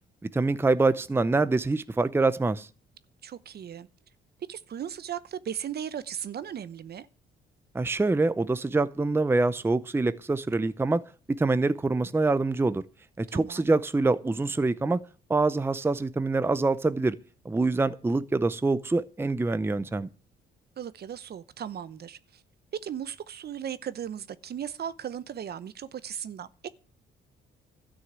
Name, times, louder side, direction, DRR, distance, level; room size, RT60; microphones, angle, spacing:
voice 1, 0.3-2.7 7.7-11.0 11.3-12.8 13.2-15.0 15.3-17.2 17.4-20.1, right 3 dB, 10° right, 0.6 m, -25 dB
voice 2, 3.2-3.9 4.5-7.1 13.3-13.7 20.8-22.4 22.8-26.7, right 9 dB, 55° right, 0.8 m, -37 dB
13.0 x 6.3 x 9.4 m
cardioid pair, 90°, 20 cm